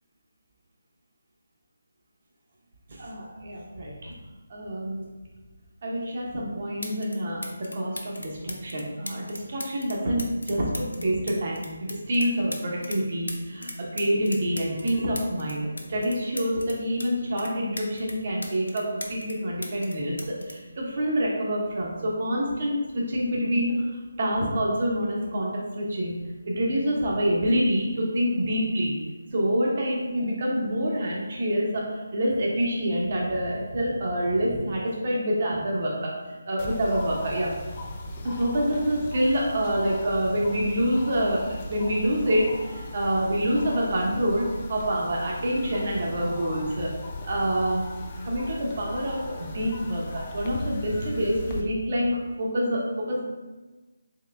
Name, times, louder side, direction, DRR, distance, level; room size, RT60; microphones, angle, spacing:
voice 1, 2.9-4.1 4.5-5.0 5.8-20.1 20.5-26.2 26.5-29.0 29.3-37.5 38.2-46.9 47.3-47.8 48.2-53.2, equal, 45° right, -3 dB, 0.9 m, -27 dB
sound 1, 6.3-6.4 6.8-7.2 7.4-13.0 13.3-17.1 17.4-19.4 19.6-21.5 22.4-22.6, left 1 dB, 80° left, 0.6 m, -38 dB
sound 2, 36.6-51.6, left 1 dB, 30° left, 0.4 m, -38 dB
3.7 x 3.0 x 3.3 m, 1.2 s
figure-of-eight pair, 155°, 0 cm